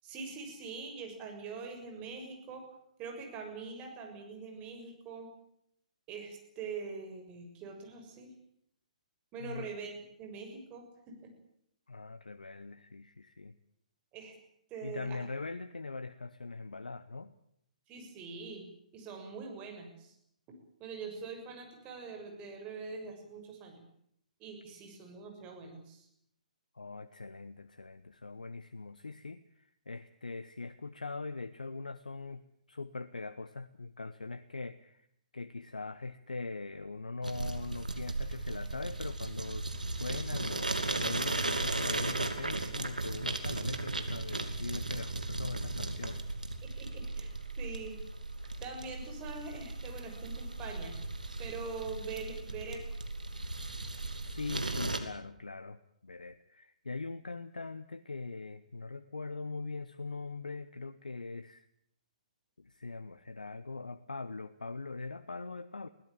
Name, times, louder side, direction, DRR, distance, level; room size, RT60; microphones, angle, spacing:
voice 1, 0.0-2.6 3.0-5.3 6.1-8.3 9.3-11.3 14.1-14.3 14.7-15.2 17.9-18.6 18.9-20.1 20.8-23.8 24.4-26.1 46.6-47.3 47.6-48.0 48.6-50.9 51.4-52.8, right 4 dB, 25° right, 3 dB, 6.8 m, -43 dB
voice 2, 9.4-9.7 11.9-13.6 14.8-17.3 26.7-32.4 32.7-35.1 35.3-46.2 54.3-61.7 62.6-65.9, left 3 dB, 85° left, 12 dB, 0.9 m, -42 dB
sound 1, 37.2-55.0, right 2 dB, 90° right, 2.8 m, -36 dB
22.5 x 17.0 x 8.9 m, 0.74 s
figure-of-eight pair, 125°, 4 cm